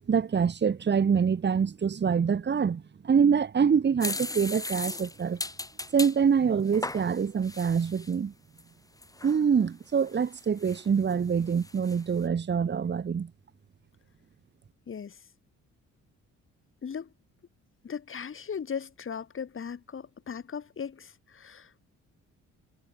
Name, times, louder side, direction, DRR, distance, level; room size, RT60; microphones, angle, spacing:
voice 1, 0.1-5.4 5.9-8.3 9.2-13.3, right 6 dB, 35° right, 1.5 m, -25 dB
sound 1, 4.0-6.2 6.7-8.1 8.6-8.7 9.0-9.4 10.0-11.1 11.5-12.0, left 2 dB, 10° left, 1.2 m, -37 dB
voice 2, 14.9-15.3 16.8-17.1 17.8-21.8, left 7 dB, 45° left, 3.6 m, -38 dB
cardioid pair, 90°, 30 cm